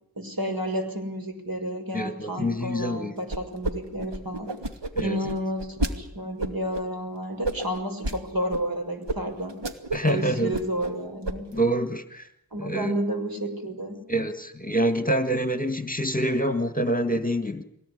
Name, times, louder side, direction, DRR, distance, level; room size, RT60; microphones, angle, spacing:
voice 1, 0.2-4.5 5.0-9.6 10.1-11.4 12.5-14.0, right 1 dB, 50° right, 4 dB, 6.3 m, -31 dB
voice 2, 1.9-3.1 5.0-5.2 9.9-10.6 11.5-12.3 12.6-13.0 14.1-17.6, right 1 dB, 20° left, 9 dB, 1.9 m, -26 dB
sound 1, 3.3-3.7 4.0-5.9 6.4-6.8 7.4-8.2 8.5-8.6 9.1-9.2 9.5-10.1 10.4-10.9 11.2-11.6, right 2 dB, 65° right, 2.6 m, -30 dB
23.0 x 18.0 x 10.0 m, 0.76 s
wide cardioid pair, 45°, 45 cm